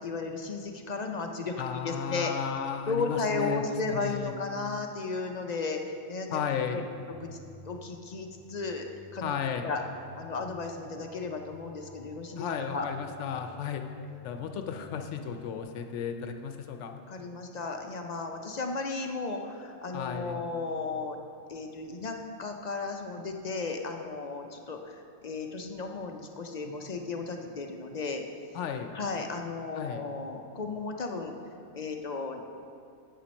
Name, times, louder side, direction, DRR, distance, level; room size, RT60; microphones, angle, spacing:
voice 1, 0.0-2.3 2.9-6.4 6.7-6.8 7.1-7.4 7.6-8.8 9.1-9.3 9.6-9.8 10.2-12.5 12.7-12.9 17.1-21.2 21.5-28.2 28.9-31.3 31.7-32.4, left 4 dB, 50° left, 4 dB, 0.5 m, -34 dB
voice 2, 1.6-4.3 6.3-6.8 9.2-9.6 12.4-13.8 14.2-16.9 19.9-20.4 28.5-28.9 29.7-30.0, left 7 dB, 85° left, 6 dB, 0.9 m, -34 dB
sound 1, 6.9-15.6, right 1 dB, 75° right, 2.5 m, -53 dB
7.5 x 7.2 x 5.2 m, 2.4 s
omnidirectional pair, 1.2 m